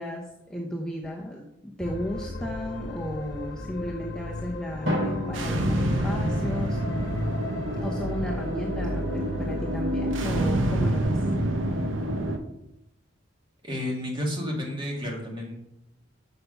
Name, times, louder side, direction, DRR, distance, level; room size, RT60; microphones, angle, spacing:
voice 1, 0.0-6.8 7.8-11.2, equal, 5° left, -2 dB, 0.8 m, -34 dB
sound 1, 1.8-10.8, left 1 dB, 60° left, 0.9 m, -35 dB
Drum, 4.9-6.9, left 1 dB, 65° right, 3.0 m, -32 dB
sound 2, 5.3-12.4, right 1 dB, 85° right, 1.0 m, -27 dB
voice 2, 13.6-15.6, left 1 dB, 25° right, -1 dB, 2.1 m, -31 dB
6.8 x 6.5 x 5.5 m, 0.82 s
head